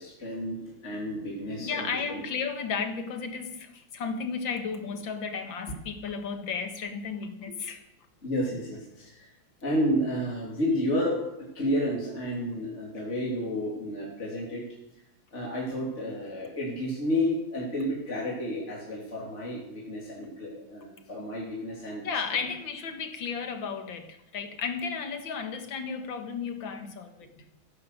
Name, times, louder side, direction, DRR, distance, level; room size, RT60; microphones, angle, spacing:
voice 1, 0.0-2.2 8.2-9.3 9.6-11.2 11.6-14.8 15.3-22.1, equal, 35° left, -3 dB, 3.6 m, -31 dB
voice 2, 1.6-7.8 22.0-27.3, left 5 dB, 70° left, 7 dB, 2.3 m, -34 dB
14.5 x 11.5 x 6.8 m, 0.87 s
omnidirectional pair, 2.2 m